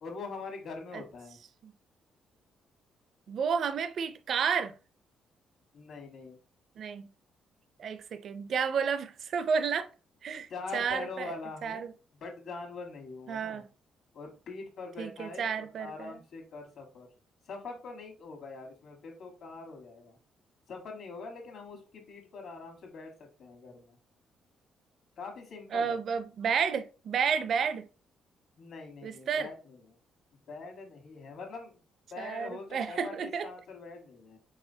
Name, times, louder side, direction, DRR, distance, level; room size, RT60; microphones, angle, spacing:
voice 1, 0.0-1.4 5.7-6.4 10.5-11.9 12.2-13.6 14.1-17.1 17.4-20.2 20.7-24.0 25.2-26.0 28.6-30.0 30.5-31.8 32.1-34.4, left 4 dB, 60° left, 1.5 m, -43 dB
voice 2, 3.3-4.8 6.8-7.1 7.8-9.9 10.2-11.3 11.6-11.9 13.3-13.7 15.0-16.2 25.7-27.9 29.0-29.5 32.2-33.5, right 6 dB, 50° right, 0.4 m, -31 dB
4.8 x 3.7 x 2.7 m
cardioid pair, 145°, 0 cm